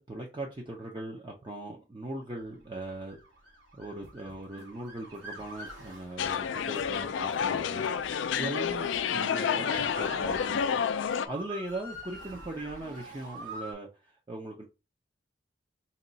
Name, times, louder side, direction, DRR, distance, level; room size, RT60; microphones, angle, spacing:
voice 1, 0.0-3.2 3.7-7.9 8.4-10.8 11.3-14.6, right 2 dB, 25° right, 0.5 m, -40 dB
Motor vehicle (road) / Siren, 2.6-13.7, right 1 dB, 85° right, 2.0 m, -47 dB
sound 1, 4.0-4.8 5.1-6.5 6.7-7.0 7.3-9.2 9.5-10.8 11.1-11.4 11.7-12.7, right 1 dB, 70° right, 1.0 m, -56 dB
sound 2, 6.2-11.3, left 7 dB, 75° left, 0.3 m, -29 dB
4.1 x 2.3 x 3.9 m
head